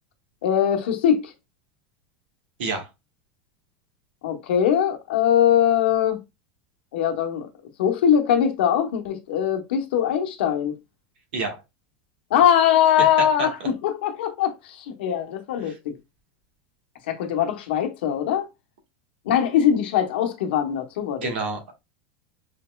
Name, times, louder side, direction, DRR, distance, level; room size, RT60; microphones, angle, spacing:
voice 1, 0.4-1.3 4.2-6.2 6.9-7.5 7.8-10.7 12.3-15.9 17.1-18.5 19.3-21.3, left 9 dB, 80° left, 1.0 m, -21 dB
voice 2, 21.2-21.7, right 3 dB, 85° right, 1.6 m, -28 dB
5.0 x 3.1 x 2.3 m
supercardioid pair, 120°, 5 cm